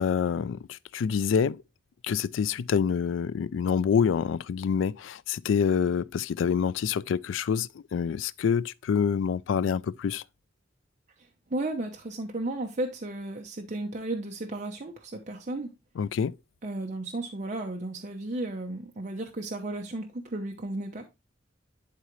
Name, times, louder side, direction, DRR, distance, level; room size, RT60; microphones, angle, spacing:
voice 1, 0.0-1.6 2.0-10.2 16.0-16.3, left 6 dB, 90° left, 0.3 m, -27 dB
voice 2, 11.2-15.7 16.6-21.1, right 2 dB, 40° right, 0.8 m, -34 dB
11.5 x 3.8 x 3.1 m
head